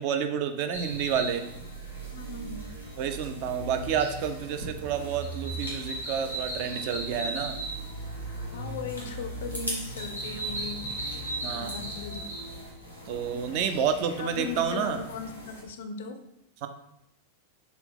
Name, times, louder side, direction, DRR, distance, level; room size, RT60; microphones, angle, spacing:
voice 1, 0.0-1.4 3.0-7.6 11.4-11.8 13.1-15.0 16.6-16.7, right 7 dB, 45° right, 8 dB, 0.4 m, -29 dB
sound 1, 0.7-15.6, right 2 dB, 90° right, 1.0 m, -37 dB
voice 2, 2.1-2.8 8.5-11.2 11.4-12.2 14.2-16.2, left 5 dB, 60° left, 7 dB, 0.4 m, -38 dB
4.1 x 2.3 x 3.5 m, 0.80 s
figure-of-eight pair, 90°, 0 cm